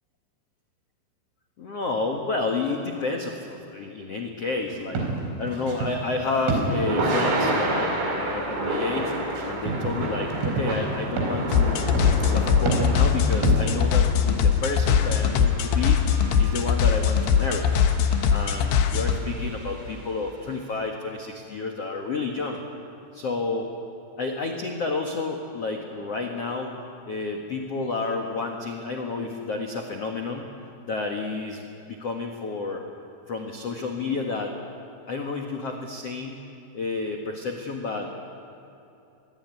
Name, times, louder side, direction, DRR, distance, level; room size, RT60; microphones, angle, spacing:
voice 1, 1.6-5.1 5.4-9.1 9.4-11.8 12.2-16.0 16.4-17.8 18.3-22.6 23.1-23.7 24.2-26.7 27.0-30.5 30.9-32.8 33.3-34.6 35.1-36.4 36.7-38.1, left 3 dB, 90° left, 2 dB, 1.3 m, -30 dB
sound 1, 4.7-6.0 6.3-7.4 9.3-10.0 10.2-13.9, right 3 dB, 75° right, 6.7 m, -28 dB
Thunder / Rain, 5.9-20.1, right 1 dB, 55° right, 5.6 m, -31 dB
sound 2, 11.5-19.2, left 7 dB, 65° left, 2.9 m, -21 dB
25.5 x 22.0 x 9.8 m, 2.8 s
omnidirectional pair, 5.8 m